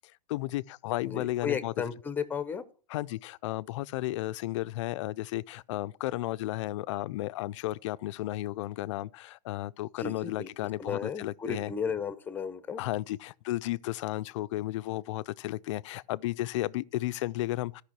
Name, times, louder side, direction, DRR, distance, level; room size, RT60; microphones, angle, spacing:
voice 1, 0.3-1.7 2.9-11.7 12.8-17.8, left 16 dB, 50° left, 0.4 m, -33 dB
voice 2, 1.0-2.6 10.0-10.5 10.8-12.8, left 6 dB, 10° left, 0.7 m, -34 dB
13.5 x 5.6 x 5.9 m
hypercardioid pair, 140°, 20 cm